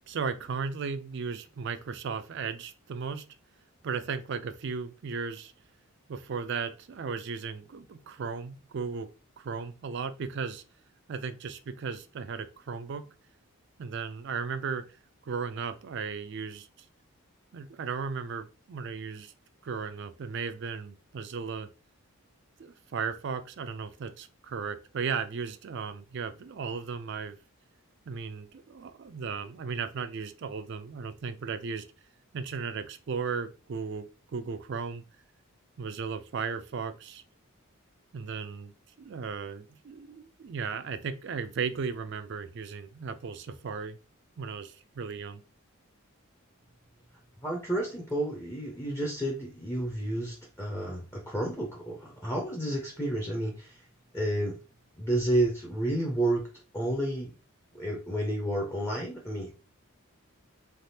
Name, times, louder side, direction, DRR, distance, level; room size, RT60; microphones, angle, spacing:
voice 1, 0.1-3.2 3.8-5.5 6.1-9.1 9.4-10.6 11.1-13.0 13.8-14.8 15.2-16.7 17.5-19.3 19.6-21.7 22.6-27.4 28.1-31.9 32.3-35.0 35.8-37.2 38.1-44.0 44.4-45.4, right 5 dB, 55° right, 0.3 m, -36 dB
voice 2, 47.4-53.8 54.1-54.6 55.0-56.5 56.7-57.3 57.7-59.5, right 1 dB, 10° left, 0.6 m, -30 dB
3.3 x 2.4 x 2.7 m
head